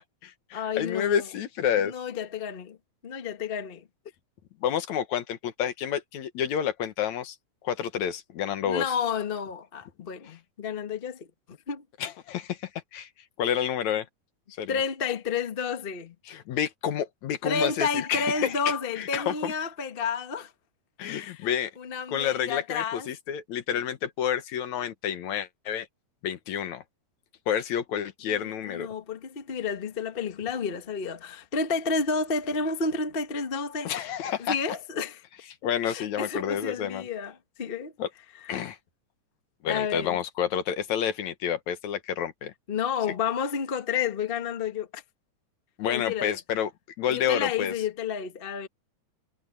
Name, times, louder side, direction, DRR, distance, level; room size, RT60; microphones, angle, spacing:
voice 1, 0.0-1.9 4.6-7.4 7.6-8.8 12.0-12.6 12.9-13.1 13.4-14.1 14.6-14.8 16.3-18.6 19.0-19.5 21.0-21.7 22.1-25.9 26.2-26.8 27.5-28.9 33.8-34.6 35.6-37.0 38.0-38.1 38.5-38.8 39.6-42.5 45.8-46.7 47.0-47.7, left 9 dB, 75° left, 2.6 m, -29 dB
voice 2, 0.5-1.3 1.8-2.8 3.0-3.9 8.6-11.8 14.7-16.1 17.4-20.5 21.2-23.1 28.3-33.9 34.4-35.2 35.9-37.9 39.7-40.2 42.7-45.0 45.9-46.4 47.1-48.7, left 5 dB, 35° left, 0.8 m, -31 dB
omnidirectional pair, 3.3 m